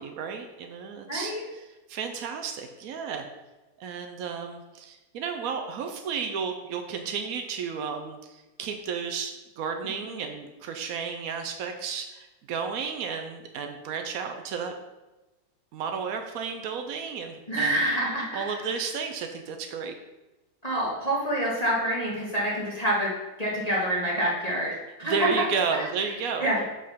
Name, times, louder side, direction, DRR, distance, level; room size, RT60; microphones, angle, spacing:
voice 1, 0.0-3.2 3.8-14.7 15.7-17.8 18.3-20.0 25.0-26.5, right 5 dB, 80° right, 4 dB, 0.7 m, -32 dB
voice 2, 1.1-1.4 17.5-18.6 20.6-23.1 23.4-24.7 25.0-25.3 26.4-26.6, right 1 dB, 20° left, -6 dB, 1.4 m, -27 dB
5.6 x 5.2 x 5.6 m, 1.1 s
omnidirectional pair, 2.2 m